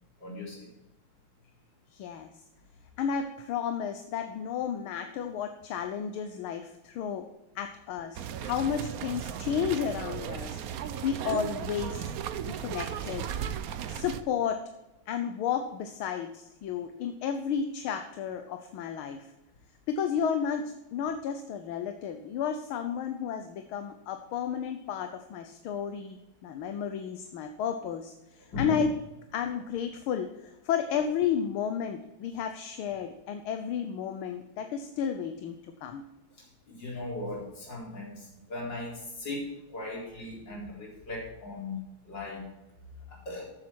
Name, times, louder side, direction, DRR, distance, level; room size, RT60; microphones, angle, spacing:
voice 1, 0.2-0.7 28.5-28.8 36.3-41.8 42.0-42.5 43.1-43.5, left 2 dB, 55° left, -3 dB, 4.8 m, -38 dB
voice 2, 1.9-2.3 3.0-7.3 7.5-10.6 11.0-12.1 12.5-13.3 13.9-14.6 15.1-19.3 19.9-28.9 29.3-36.0, left 7 dB, 80° left, 7 dB, 1.7 m, -32 dB
sound 1, 8.2-14.2, right 9 dB, 70° right, 0.8 m, -36 dB
14.0 x 7.7 x 4.6 m, 0.96 s
omnidirectional pair, 2.3 m